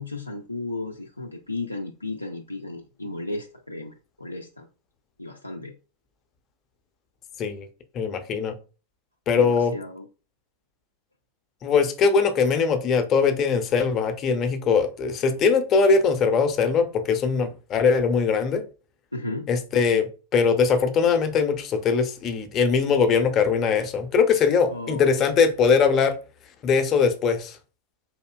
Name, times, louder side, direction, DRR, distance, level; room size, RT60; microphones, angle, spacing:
voice 1, 0.0-4.7 5.2-5.7 9.4-10.1 19.1-19.5 24.7-25.3, left 2 dB, 85° left, 0.4 m, -34 dB
voice 2, 7.9-8.5 9.3-9.7 11.6-18.6 19.5-26.1 26.6-27.6, left 5 dB, 30° left, 0.6 m, -21 dB
4.1 x 2.7 x 2.2 m
figure-of-eight pair, 90°, 0 cm